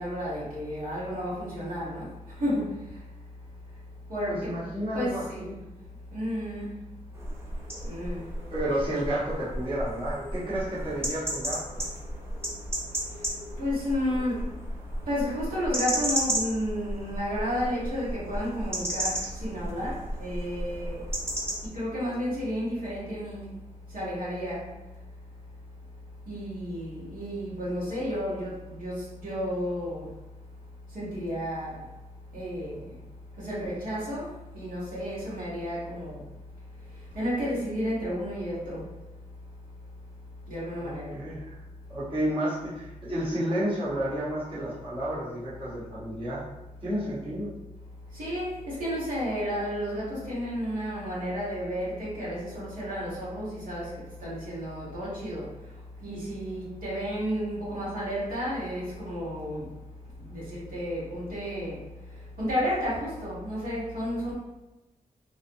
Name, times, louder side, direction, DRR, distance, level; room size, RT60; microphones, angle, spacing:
voice 1, 0.0-3.8 4.1-4.6 4.9-5.5 5.8-6.9 7.4-8.5 13.0-14.6 15.0-21.1 21.6-23.6 23.9-24.7 26.2-30.1 30.9-31.9 32.3-33.0 33.3-36.3 36.7-38.9 40.5-41.2 48.1-59.8 60.2-64.3, equal, 80° right, -9 dB, 1.2 m, -32 dB
voice 2, 4.3-5.6 8.5-11.8 40.8-41.6 41.9-46.4 46.8-47.5, right 1 dB, 35° right, -10 dB, 1.0 m, -31 dB
sound 1, 7.1-21.7, right 1 dB, 15° right, 0.6 m, -34 dB
2.6 x 2.4 x 2.6 m, 1.0 s
wide cardioid pair, 95°, 15 cm